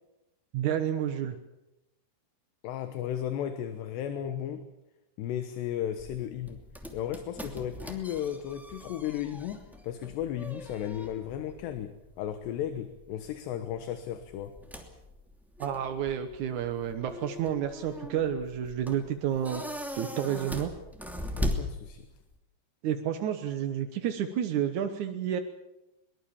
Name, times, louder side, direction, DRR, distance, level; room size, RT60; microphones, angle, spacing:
voice 1, 0.5-1.3 15.6-19.6 19.9-20.7 22.8-25.4, right 9 dB, 70° right, 7 dB, 1.8 m, -30 dB
voice 2, 2.6-4.7 5.2-6.7 6.9-14.6 21.3-22.1, left 10 dB, 75° left, 9 dB, 3.3 m, -35 dB
sound 1, 6.0-22.4, left 1 dB, ahead, 1.4 m, -40 dB
22.5 x 21.5 x 7.2 m, 0.94 s
omnidirectional pair, 5.1 m